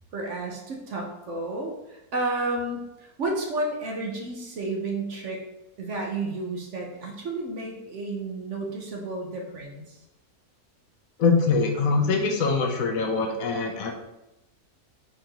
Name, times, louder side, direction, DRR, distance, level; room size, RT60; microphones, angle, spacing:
voice 1, 0.1-5.4 5.8-10.0, right 2 dB, 60° right, 0 dB, 0.9 m, -31 dB
voice 2, 11.2-13.9, left 4 dB, 70° left, 2 dB, 1.0 m, -23 dB
4.6 x 2.6 x 4.4 m, 0.93 s
omnidirectional pair, 1.6 m